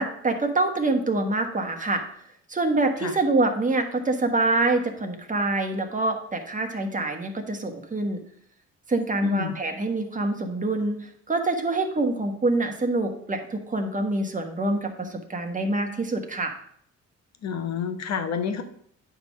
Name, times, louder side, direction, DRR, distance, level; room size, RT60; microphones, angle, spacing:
voice 1, 0.0-2.0 2.5-8.2 8.9-16.6, right 2 dB, 25° right, 4 dB, 1.4 m, -25 dB
voice 2, 9.2-9.6 17.4-18.6, left 6 dB, 60° left, 8 dB, 1.2 m, -29 dB
9.4 x 3.6 x 6.3 m, 0.65 s
cardioid pair, 90°, 30 cm